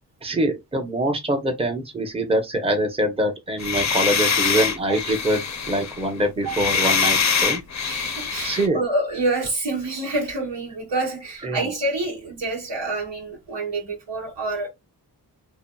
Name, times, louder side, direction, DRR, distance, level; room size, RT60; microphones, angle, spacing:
voice 1, 0.2-7.6 8.4-8.8 11.4-11.7, right 1 dB, 15° right, 0.7 m, -24 dB
sound 1, 3.6-8.7, left 6 dB, 45° left, 0.5 m, -24 dB
voice 2, 7.8-14.7, right 2 dB, 85° right, 1.4 m, -27 dB
2.7 x 2.5 x 2.2 m
cardioid pair, 40°, 41 cm